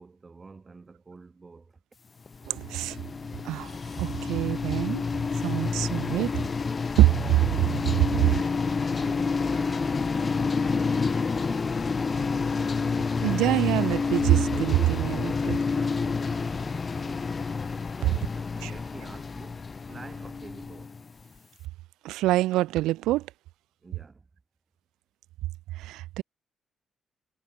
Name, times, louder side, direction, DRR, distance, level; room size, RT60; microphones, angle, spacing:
voice 1, 0.0-1.8 8.2-12.5 15.4-17.3 18.0-21.0 23.8-24.3, right 4 dB, 35° right, 4.7 m, -48 dB
sound 1, 2.3-21.3, left 4 dB, 40° left, 0.9 m, -29 dB
voice 2, 2.5-3.0 3.4-5.0 5.4-6.3 7.0-7.1 7.5-8.2 13.2-15.6 18.6-18.7 22.0-23.3 25.7-26.2, right 16 dB, 75° right, 1.1 m, -25 dB
hypercardioid pair, 40°, 0 cm